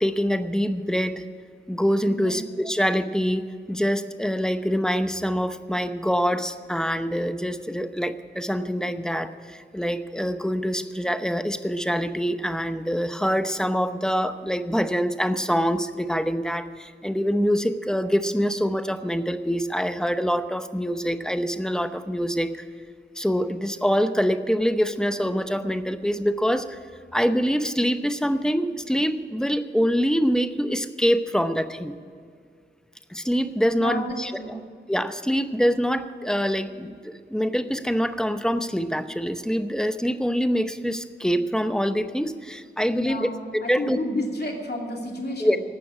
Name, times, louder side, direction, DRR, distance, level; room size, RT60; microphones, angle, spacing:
voice 1, 0.0-1.2 1.7-22.7 23.2-26.8 27.1-31.9 33.1-34.5 34.9-44.0 45.4-45.6, equal, 5° left, 10 dB, 0.8 m, -25 dB
voice 2, 2.1-2.4 33.8-34.6 42.9-45.6, left 1 dB, 55° left, 0 dB, 2.7 m, -31 dB
16.5 x 6.1 x 9.7 m, 2.1 s
cardioid pair, 50°, 19 cm